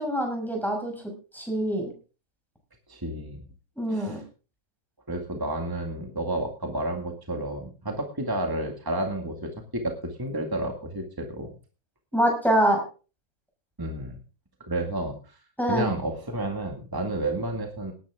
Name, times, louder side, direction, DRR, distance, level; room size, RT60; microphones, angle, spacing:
voice 1, 0.0-1.9 3.8-4.2 12.1-12.8 15.6-15.9, right 1 dB, ahead, 1 dB, 6.0 m, -25 dB
voice 2, 2.9-3.4 3.9-4.2 5.1-11.6 13.8-14.2 14.6-15.4 15.7-17.9, right 1 dB, 15° right, 3 dB, 2.0 m, -31 dB
18.5 x 10.5 x 3.6 m, 0.35 s
omnidirectional pair, 1.5 m